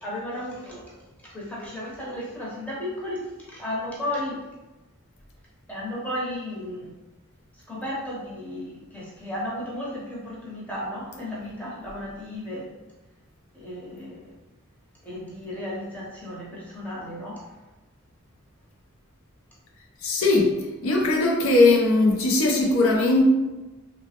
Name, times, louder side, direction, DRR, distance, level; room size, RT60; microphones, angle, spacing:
voice 1, 0.0-0.8 1.3-4.4 5.7-6.9 7.7-12.7 13.5-14.3 15.0-17.4, left 1 dB, 5° left, -7 dB, 0.7 m, -34 dB
voice 2, 20.0-20.5 20.8-23.2, left 2 dB, 70° left, -1 dB, 0.5 m, -19 dB
3.0 x 2.0 x 2.8 m, 1.1 s
head